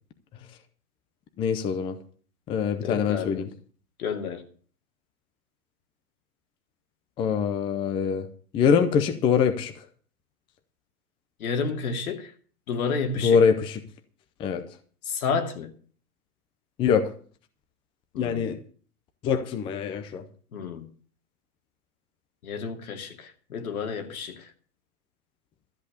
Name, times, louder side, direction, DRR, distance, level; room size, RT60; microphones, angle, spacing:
voice 1, 1.4-1.9 2.5-3.5 7.2-8.3 8.5-9.7 13.2-13.8 14.4-14.6 16.8-17.0 18.2-18.6 19.2-20.2, left 6 dB, 10° left, 0.5 m, -23 dB
voice 2, 2.8-3.5 4.0-4.4 11.4-12.3 12.7-13.4 15.0-15.7 18.1-18.6 20.5-20.9 22.4-24.5, left 5 dB, 70° left, 2.5 m, -31 dB
13.0 x 8.2 x 6.5 m
hypercardioid pair, 145°, 44 cm